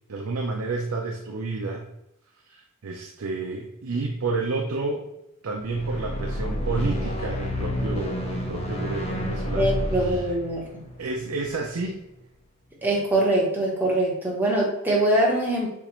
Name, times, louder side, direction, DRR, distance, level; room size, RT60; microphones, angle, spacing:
voice 1, 0.1-1.9 2.5-5.1 5.4-10.3 11.0-12.0, right 3 dB, 85° right, 1 dB, 0.6 m, -30 dB
sound 1, 5.6-11.9, left 1 dB, 30° left, 0.7 m, -30 dB
voice 2, 9.5-10.7 12.8-15.7, right 1 dB, 10° right, -4 dB, 1.1 m, -23 dB
7.0 x 2.5 x 3.0 m, 0.88 s
head